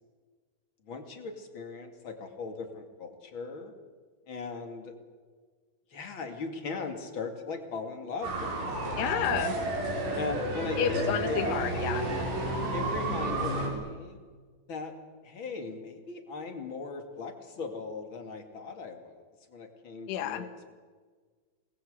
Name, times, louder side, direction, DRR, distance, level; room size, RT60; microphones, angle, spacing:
voice 1, 0.8-3.7 4.3-4.9 5.9-9.0 10.1-11.5 12.7-14.2 14.7-14.9 15.2-19.2 19.5-20.7, left 4 dB, 35° left, 5 dB, 2.2 m, -39 dB
sound 1, 8.2-13.7, right 2 dB, 75° right, 7.8 m, -31 dB
voice 2, 9.0-9.6 10.8-12.1 20.1-20.5, left 11 dB, 80° left, 9 dB, 3.9 m, -30 dB
27.5 x 20.5 x 8.2 m, 1.5 s
omnidirectional pair, 5.4 m